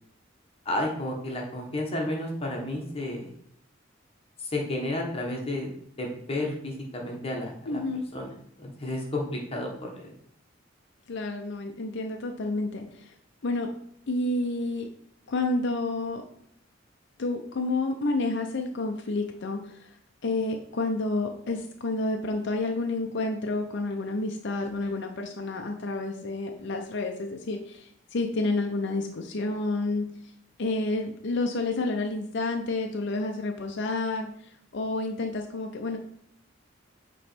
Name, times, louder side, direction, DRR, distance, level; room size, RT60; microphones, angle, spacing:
voice 1, 0.6-3.3 4.4-5.7 6.0-7.8 8.1-8.3 8.6-10.1, left 1 dB, 30° left, 0 dB, 1.2 m, -32 dB
voice 2, 7.7-8.0 11.1-13.2 13.4-13.7 14.1-14.9 15.3-16.2 17.2-20.0 20.2-30.0 30.6-36.0, left 2 dB, 65° left, 3 dB, 0.6 m, -30 dB
8.5 x 3.1 x 4.4 m, 0.69 s
head